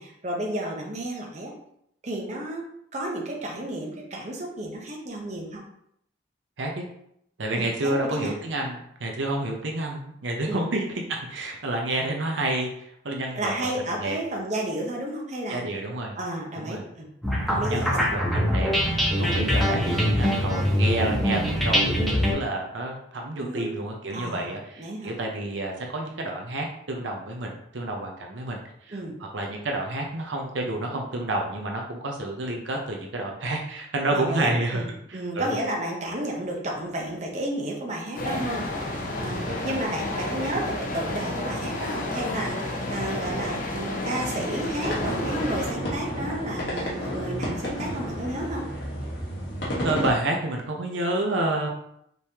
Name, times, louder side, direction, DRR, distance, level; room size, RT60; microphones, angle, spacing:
voice 1, 0.0-1.5 2.0-2.6 2.9-5.6 7.5-8.4 10.5-10.6 13.3-15.6 16.1-17.1 17.5-18.1 19.1-19.4 23.4-23.7 24.1-24.5 24.8-25.1 28.9-29.2 34.1-48.7, right 1 dB, 40° right, 0 dB, 0.8 m, -32 dB
voice 2, 6.6-6.9 7.4-12.7 13.0-13.5 13.9-14.2 15.5-16.2 16.6-16.9 17.7-18.7 19.2-28.6 28.9-35.5 39.4-39.8 49.8-51.7, right 2 dB, 85° right, 1 dB, 0.7 m, -29 dB
sound 1, 17.2-22.3, equal, ahead, 0.9 m, -23 dB
sound 2, 38.2-45.7, left 1 dB, 45° left, 0.7 m, -31 dB
sound 3, 44.8-50.1, equal, 70° left, 1.4 m, -31 dB
5.3 x 3.2 x 2.9 m, 0.73 s
head